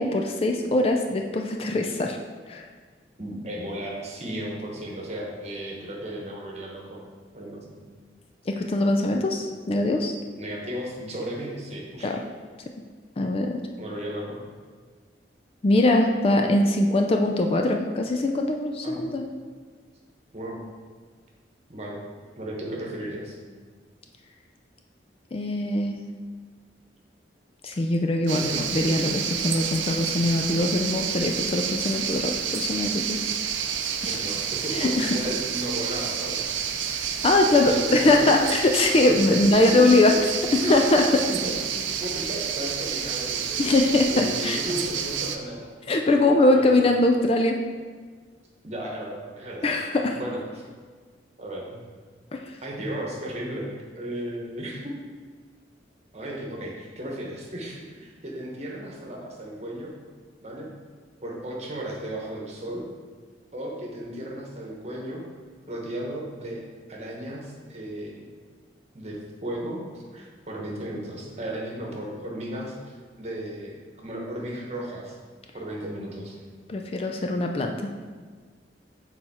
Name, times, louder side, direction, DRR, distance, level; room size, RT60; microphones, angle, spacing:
voice 1, 0.0-2.2 2.5-2.7 8.5-10.1 12.0-12.2 13.2-13.6 15.6-19.2 25.3-26.0 27.6-33.2 34.0-34.2 34.7-35.1 37.2-40.1 40.5-41.2 43.6-44.6 45.9-47.6 49.6-50.2 52.3-52.4 76.7-77.7, left 2 dB, 30° left, 3 dB, 0.3 m, -22 dB
voice 2, 3.2-7.0 7.3-7.8 10.4-12.1 13.8-14.4 18.8-19.0 20.3-20.6 21.7-22.0 22.4-23.4 28.3-28.6 34.0-36.5 37.4-38.3 39.3-39.4 39.7-40.2 40.5-40.7 41.3-43.6 44.0-45.7 46.5-46.9 48.6-49.7 50.1-50.6 51.4-51.8 52.6-54.9 56.1-59.9 60.4-60.7 61.2-62.9 63.5-65.2 65.7-68.2 68.9-75.2 75.5-76.3, right 1 dB, 35° right, -2 dB, 1.1 m, -35 dB
sound 1, 28.3-45.4, right 8 dB, 85° right, 0.5 m, -29 dB
6.8 x 4.2 x 4.3 m, 1.5 s
head